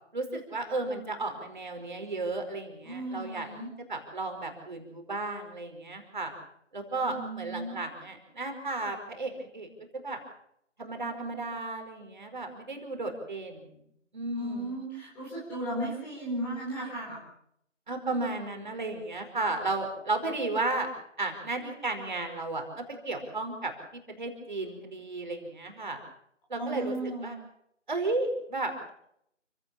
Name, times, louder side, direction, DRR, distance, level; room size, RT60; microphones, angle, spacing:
voice 1, 0.1-3.5 3.9-6.3 6.7-9.7 10.0-10.2 10.8-13.7 14.1-14.8 17.9-20.9 21.2-22.6 23.0-23.7 24.2-26.0 26.5-27.0 27.2-27.4 27.9-28.9, right 2 dB, 40° right, 5 dB, 4.8 m, -33 dB
voice 2, 2.8-3.7 7.0-7.8 14.3-17.2 26.6-27.3, right 1 dB, 5° left, -6 dB, 4.4 m, -35 dB
29.0 x 17.0 x 7.2 m, 0.73 s
figure-of-eight pair, 170°, 37 cm